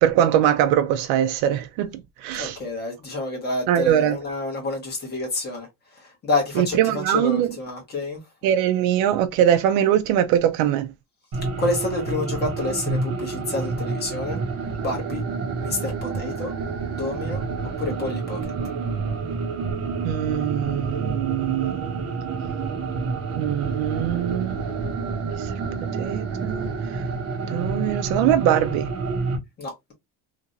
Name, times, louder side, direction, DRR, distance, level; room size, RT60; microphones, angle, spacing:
voice 1, 0.0-2.6 3.7-4.2 6.6-7.6 8.4-10.9 20.0-21.9 23.4-24.6 25.3-25.5 25.8-26.7 27.5-28.9, right 11 dB, 75° right, 0.5 m, -22 dB
voice 2, 2.3-5.7 6.0-8.2 11.6-14.4 14.7-15.2 15.6-16.5 17.0-17.4 17.8-18.5 29.6-29.9, left 2 dB, 25° left, 1.2 m, -28 dB
sound 1, 11.3-29.4, right 4 dB, 45° right, 1.0 m, -28 dB
2.9 x 2.5 x 2.5 m
cardioid pair, 175°, 36 cm